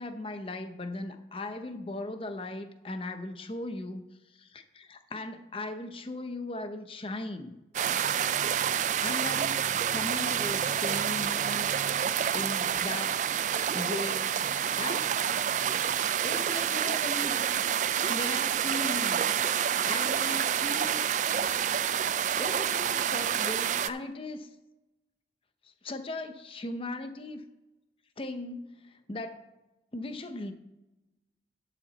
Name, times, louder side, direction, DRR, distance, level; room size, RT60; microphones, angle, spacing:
voice 1, 0.0-4.0 4.3-7.6 9.0-11.7 12.1-13.2 13.7-15.2 16.2-17.4 18.1-19.3 19.9-21.0 22.4-24.5 25.8-27.4 28.2-29.4 29.9-30.5, left 2 dB, 30° left, 8 dB, 0.8 m, -38 dB
Waterfall Small with Water Stream, 7.7-23.9, right 9 dB, 45° right, 0.3 m, -28 dB
11.0 x 7.3 x 4.1 m, 1.0 s
head